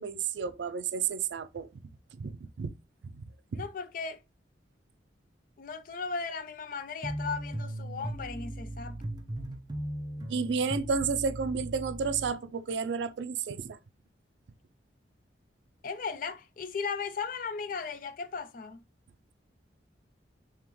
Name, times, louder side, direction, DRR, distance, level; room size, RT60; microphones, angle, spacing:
voice 1, 0.0-1.8 2.1-2.7 3.1-3.2 3.5-3.6 10.3-13.8, right 5 dB, 75° right, 0.4 m, -31 dB
voice 2, 3.6-4.2 5.6-9.0 15.8-18.8, left 5 dB, 50° left, 0.4 m, -36 dB
sound 1, 7.0-12.3, right 1 dB, 25° right, 0.5 m, -38 dB
3.6 x 2.9 x 3.0 m
head